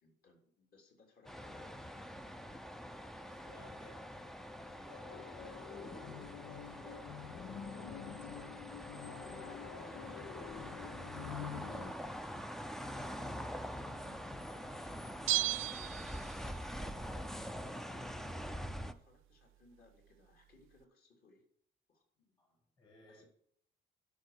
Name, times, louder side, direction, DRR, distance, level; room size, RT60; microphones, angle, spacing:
voice 1, 0.0-2.0 5.0-5.2 8.2-8.7 12.8-13.4 13.8-15.7 18.7-21.4 21.9-22.7 23.1-23.3, left 3 dB, 50° left, 2 dB, 3.6 m, -65 dB
sound 1, 1.3-18.9, equal, ahead, 0.5 m, -45 dB
voice 2, 3.2-5.7 6.1-7.1 9.8-10.5 11.3-11.8 12.9-13.3 16.4-18.3 22.4-23.3, left 2 dB, 25° left, 1 dB, 2.0 m, -59 dB
sound 2, 5.1-11.9, left 9 dB, 75° left, 0.9 m, -48 dB
Bell, 15.3-16.7 17.0-17.1, right 17 dB, 90° right, 0.4 m, -35 dB
12.0 x 5.6 x 6.6 m, 0.64 s
cardioid pair, 155°, 20 cm